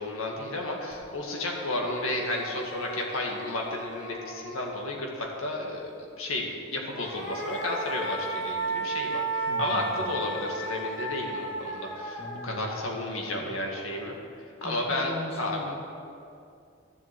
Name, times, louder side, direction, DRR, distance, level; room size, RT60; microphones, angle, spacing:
voice 1, 0.0-14.2 14.6-15.7, left 1 dB, 75° left, 0 dB, 2.0 m, -32 dB
sound 1, 0.9-1.0 1.4-5.0 6.7-14.0, right 2 dB, 50° left, 3.4 m, -35 dB
voice 2, 9.5-10.1 12.2-12.7 13.4-13.5 14.6-15.7, left 1 dB, 30° left, -2 dB, 1.6 m, -39 dB
13.0 x 7.7 x 8.4 m, 2.4 s
head